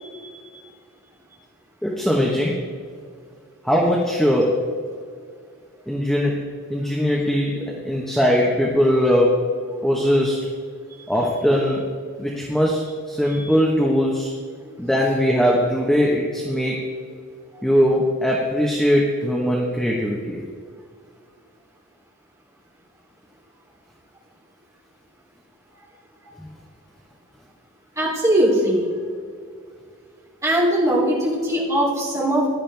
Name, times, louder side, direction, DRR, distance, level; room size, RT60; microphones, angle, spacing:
voice 1, 1.8-2.5 3.6-4.6 5.9-6.3 6.7-9.3 9.8-10.4 11.1-11.8 12.2-14.3 14.8-16.8 17.6-20.4 26.4-26.5, equal, ahead, -3 dB, 1.1 m, -20 dB
voice 2, 28.0-28.9 30.4-32.5, right 1 dB, 15° right, -5 dB, 3.1 m, -20 dB
16.5 x 11.0 x 3.4 m, 2.1 s
head